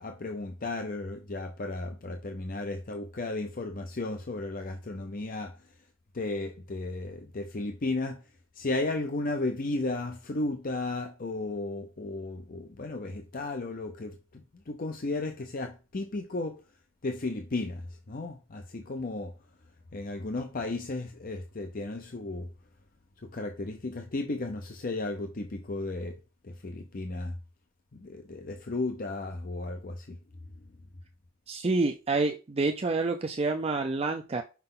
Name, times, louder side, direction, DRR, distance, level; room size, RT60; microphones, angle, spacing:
voice 1, 0.0-5.6 6.1-8.2 8.5-16.6 17.0-19.3 19.9-22.5 23.2-27.3 27.9-30.2, left 2 dB, 45° left, 0.6 m, -34 dB
voice 2, 31.5-34.4, right 3 dB, 30° right, 0.5 m, -28 dB
5.9 x 5.4 x 3.7 m
head